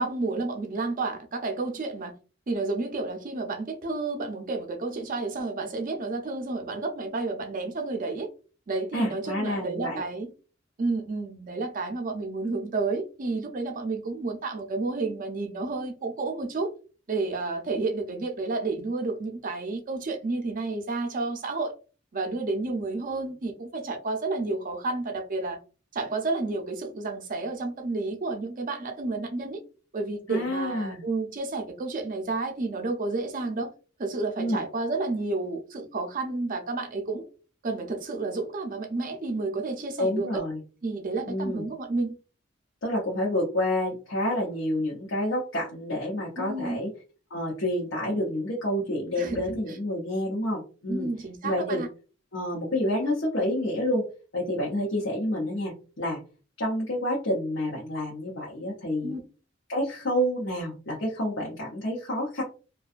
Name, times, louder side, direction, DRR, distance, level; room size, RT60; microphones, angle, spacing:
voice 1, 0.0-2.1 2.5-8.3 8.7-10.3 10.8-16.7 17.1-21.7 22.1-25.6 25.9-29.6 29.9-33.7 34.0-37.2 37.6-40.4 40.8-42.2 46.4-46.8 49.2-49.8 50.9-51.9 59.0-59.2, right 3 dB, 45° right, 0.5 m, -31 dB
voice 2, 8.9-10.0 30.3-31.0 34.4-34.6 40.0-40.6 41.3-41.6 42.8-46.9 47.3-51.1 51.4-51.8 52.3-54.0 54.3-56.2 56.6-59.1 59.7-62.4, left 1 dB, 70° left, 0.8 m, -28 dB
2.6 x 2.2 x 2.4 m
head